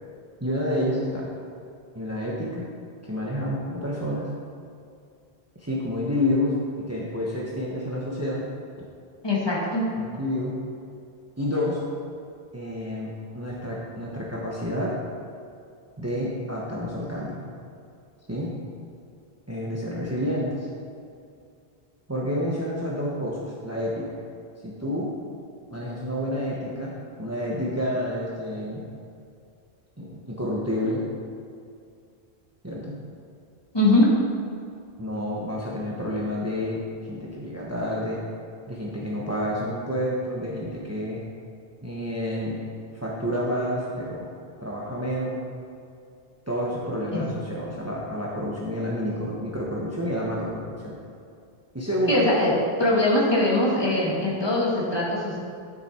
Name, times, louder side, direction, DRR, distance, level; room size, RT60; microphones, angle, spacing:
voice 1, 0.4-1.3 1.9-2.7 3.1-4.3 5.6-8.4 10.0-10.5 11.4-11.8 12.5-15.0 16.0-17.4 18.3-18.5 19.5-20.7 22.1-24.1 24.8-25.1 25.7-28.9 30.0-31.0 32.6-33.0 35.0-36.8 37.1-38.2 38.7-41.2 41.8-42.6 42.9-44.3 44.6-45.4 46.5-50.9 51.7-52.3, left 1 dB, 15° right, -4 dB, 1.1 m, -29 dB
voice 2, 9.2-9.9 33.7-34.1 47.1-47.2 52.1-52.5 52.8-55.4, left 1 dB, 25° left, -6 dB, 2.0 m, -21 dB
10.5 x 6.9 x 4.4 m, 2.4 s
omnidirectional pair, 1.0 m